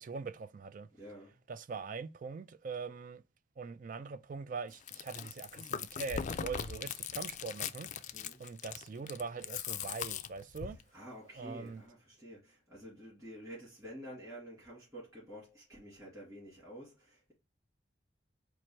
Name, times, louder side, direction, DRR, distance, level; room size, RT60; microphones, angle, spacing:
voice 1, 0.0-0.9 1.5-3.2 3.6-7.9 8.4-10.8 11.4-11.8, right 4 dB, 45° right, 0.3 m, -42 dB
voice 2, 0.9-1.4 6.6-6.9 8.1-8.4 10.6-17.3, equal, 20° right, 2.5 m, -50 dB
Chewing mastication, 4.7-10.8, left 8 dB, 40° left, 0.4 m, -40 dB
4.5 x 2.5 x 4.3 m
head